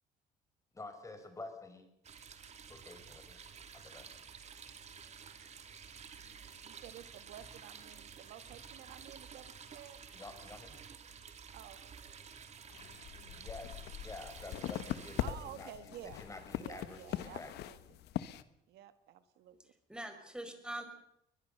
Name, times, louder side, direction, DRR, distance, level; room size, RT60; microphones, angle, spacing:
voice 1, 0.7-1.9 2.7-4.1 10.1-10.8 13.3-17.7, left 2 dB, 20° left, 7 dB, 5.2 m, -49 dB
sound 1, 2.0-15.3, right 6 dB, 40° right, 2.7 m, -52 dB
voice 2, 6.6-10.0 11.5-11.8 15.2-16.2 16.6-18.0 18.7-19.7, right 11 dB, 80° right, 11 dB, 1.8 m, -52 dB
sound 2, 12.7-18.4, left 12 dB, 80° left, 1.3 m, -41 dB
voice 3, 19.6-20.8, right 1 dB, 5° right, 7 dB, 5.0 m, -44 dB
22.5 x 21.0 x 6.7 m, 0.76 s
cardioid pair, 110°, 17 cm